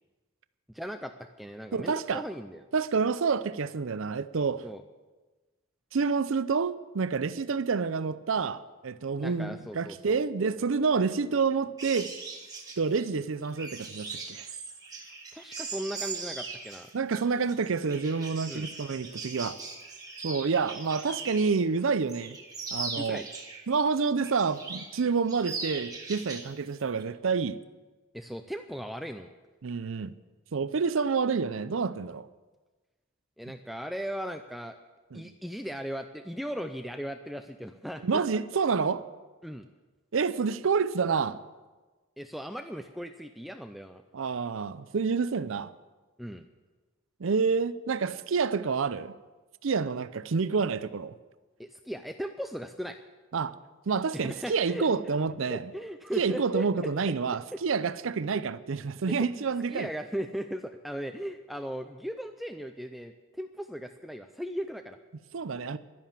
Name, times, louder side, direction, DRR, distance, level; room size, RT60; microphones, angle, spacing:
voice 1, 0.7-2.6 4.6-4.8 9.2-10.2 15.3-16.9 18.5-18.7 22.9-23.3 28.1-29.3 33.4-34.8 35.1-38.2 39.4-39.7 42.2-44.0 46.2-46.5 51.6-53.0 54.1-54.9 55.5-56.7 59.1-59.4 59.7-65.0, equal, ahead, 0.4 m, -37 dB
voice 2, 1.7-2.2 2.7-4.6 5.9-12.1 12.8-14.5 16.9-19.6 20.2-22.4 22.7-23.2 23.7-27.6 29.6-30.1 30.5-32.3 33.5-33.6 35.1-35.3 38.0-39.0 40.1-41.4 44.1-45.7 47.2-49.1 49.6-51.1 53.3-53.5 53.9-55.7 56.2-59.9 65.3-65.8, right 5 dB, 70° right, 0.5 m, -28 dB
sound 1, 11.8-21.6 21.9-23.8 24.2-25.0 25.3-26.5 26.8-27.0, right 4 dB, 15° right, 1.7 m, -40 dB
12.0 x 11.0 x 7.4 m
head